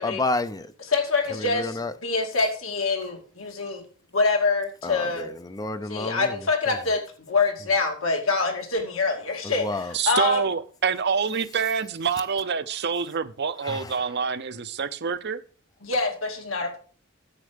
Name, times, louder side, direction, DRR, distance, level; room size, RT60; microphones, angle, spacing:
voice 1, 0.0-0.7 1.3-1.9 4.8-6.4 6.7-6.8 9.4-9.9 13.6-14.1, left 2 dB, 20° left, 0.5 m, -30 dB
voice 2, 0.9-3.8 4.1-5.3 5.9-7.0 7.3-10.4 15.8-16.8, left 3 dB, 75° left, 2.4 m, -25 dB
voice 3, 9.9-15.4, right 6 dB, 55° right, 0.7 m, -26 dB
9.9 x 7.6 x 5.1 m
head